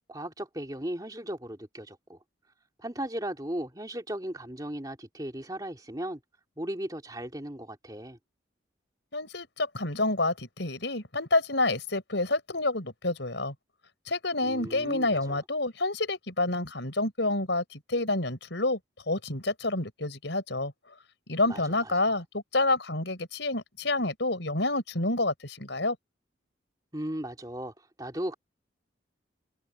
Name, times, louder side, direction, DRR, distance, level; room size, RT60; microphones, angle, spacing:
voice 1, 0.1-2.2 2.8-6.2 6.6-8.2 14.4-15.4 21.4-21.9 26.9-28.3, right 1 dB, 20° right, 3.1 m, -36 dB
voice 2, 9.1-13.5 14.1-18.8 19.1-20.7 21.3-26.0, left 2 dB, 70° left, 5.1 m, -28 dB
head